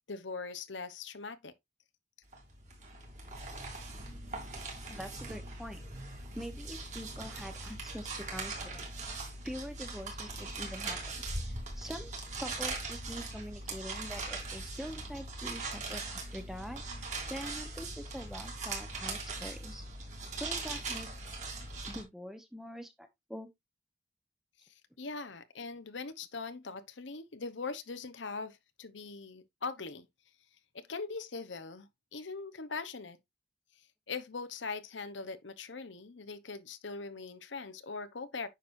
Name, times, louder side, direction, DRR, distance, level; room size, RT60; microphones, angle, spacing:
voice 1, 0.1-1.5 24.6-30.1 30.7-33.2 34.1-38.5, left 4 dB, 85° left, 0.9 m, -41 dB
sound 1, 2.3-22.0, right 3 dB, 40° right, 3.0 m, -40 dB
voice 2, 4.9-5.8 6.3-8.9 9.4-11.0 11.8-12.1 12.4-16.8 17.3-19.8 20.4-21.1 21.9-23.5, equal, ahead, 1.0 m, -44 dB
9.3 x 6.1 x 2.6 m
head